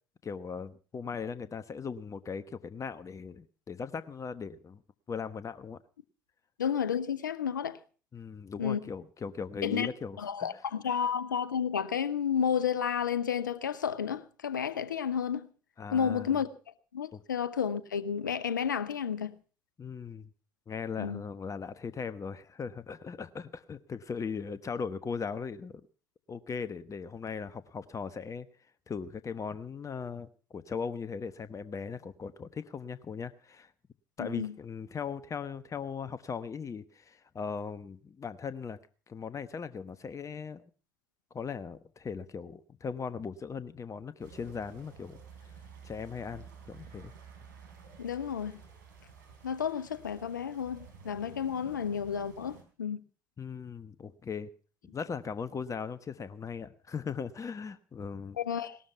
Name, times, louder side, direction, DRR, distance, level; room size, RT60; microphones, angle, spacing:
voice 1, 0.2-4.8 5.1-5.8 8.1-10.5 10.9-11.1 15.8-16.4 17.1-17.2 19.8-20.3 20.7-25.8 26.3-28.5 28.9-33.7 34.2-38.8 39.1-40.6 41.3-45.2 45.8-47.1 53.4-54.5 54.8-58.4, left 6 dB, 30° left, 1.1 m, -38 dB
voice 2, 6.6-7.8 8.6-8.8 9.6-9.9 10.2-15.5 15.9-16.5 16.9-19.3 21.0-21.2 34.2-34.5 48.0-48.6 49.4-53.0 58.4-58.8, left 7 dB, 90° left, 0.8 m, -31 dB
sound 1, 44.2-52.6, right 6 dB, 80° right, 4.2 m, -52 dB
18.5 x 13.0 x 5.7 m
hypercardioid pair, 60°, 10 cm